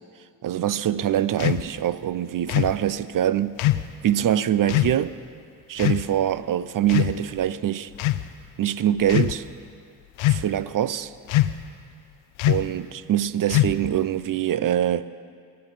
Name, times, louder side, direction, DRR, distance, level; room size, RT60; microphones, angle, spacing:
voice 1, 0.4-3.6 4.0-5.1 5.7-7.9 8.6-9.5 10.3-11.1 12.5-15.1, right 11 dB, 45° right, 0.6 m, -24 dB
sound 1, 1.4-1.7 2.5-2.8 3.6-3.9 4.7-5.0 5.8-6.1 6.9-7.4 7.9-8.3 9.0-9.4 10.2-10.6 11.3-11.7 12.4-12.7 13.5-14.0, left 14 dB, 75° left, 0.6 m, -22 dB
23.0 x 14.0 x 3.3 m
hypercardioid pair, 40°, 47 cm